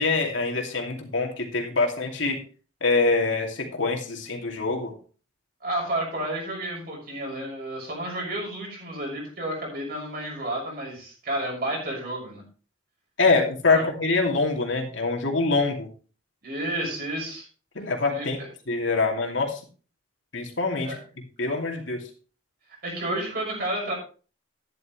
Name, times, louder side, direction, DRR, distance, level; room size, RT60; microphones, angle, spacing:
voice 1, 0.0-2.4 2.8-4.9 13.2-15.9 17.7-18.4 18.7-19.6 20.3-20.9 21.4-22.0, left 3 dB, 70° left, 2 dB, 2.5 m, -24 dB
voice 2, 5.6-12.4 13.7-13.8 16.4-17.5 18.1-18.5 20.8-21.0 22.8-23.9, right 1 dB, 45° right, -2 dB, 6.1 m, -31 dB
12.5 x 10.5 x 3.2 m, 0.38 s
head